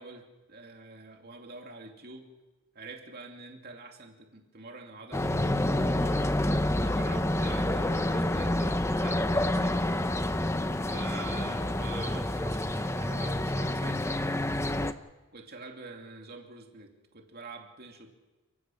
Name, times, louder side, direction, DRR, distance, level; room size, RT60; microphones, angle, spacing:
voice 1, 0.0-2.3 2.7-6.2 6.8-9.9 10.8-14.2 15.3-18.1, right 3 dB, 45° right, 3 dB, 2.7 m, -46 dB
sound 1, 5.1-14.9, left 1 dB, 10° left, 0.7 m, -28 dB
29.5 x 16.0 x 6.3 m, 1.1 s
head